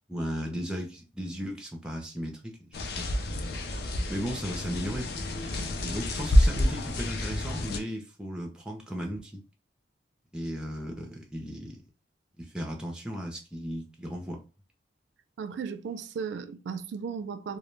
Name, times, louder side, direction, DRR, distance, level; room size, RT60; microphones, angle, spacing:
voice 1, 0.1-3.2 4.1-5.1 5.8-9.4 10.3-11.8 12.4-14.4, equal, 5° right, 0.4 m, -36 dB
sound 1, 2.7-7.8, left 1 dB, 55° left, 0.4 m, -28 dB
voice 2, 15.4-17.6, right 6 dB, 80° right, 0.3 m, -35 dB
2.2 x 2.1 x 3.1 m
head